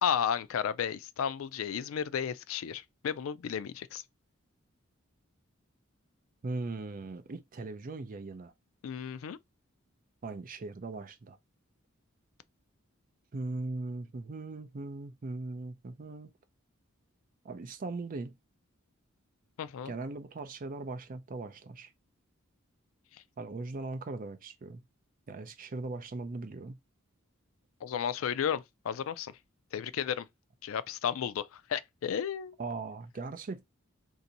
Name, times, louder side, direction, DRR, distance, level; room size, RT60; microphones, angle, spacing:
voice 1, 0.0-4.0 8.8-9.4 19.6-19.9 27.8-29.3 29.7-30.3 30.6-32.6, left 8 dB, 75° left, 0.3 m, -33 dB
voice 2, 6.4-8.5 10.2-11.4 13.3-16.3 17.4-18.3 19.9-21.9 23.4-24.8 25.3-26.8 32.6-33.6, right 3 dB, 40° right, 0.5 m, -39 dB
2.7 x 2.6 x 3.9 m
head